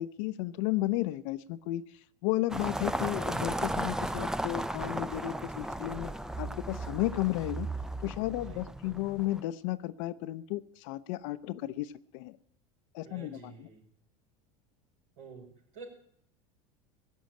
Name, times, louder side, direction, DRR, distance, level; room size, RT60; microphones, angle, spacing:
voice 1, 0.0-6.1 6.4-7.7 8.0-12.4 12.9-13.7, left 16 dB, 65° left, 12 dB, 0.6 m, -33 dB
sound 1, 2.5-9.4, right 1 dB, 5° right, 0.5 m, -35 dB
voice 2, 8.3-8.9 13.0-13.8 15.2-15.9, right 5 dB, 70° right, 2 dB, 5.2 m, -49 dB
17.0 x 6.2 x 9.1 m, 0.69 s
hypercardioid pair, 90°, 17 cm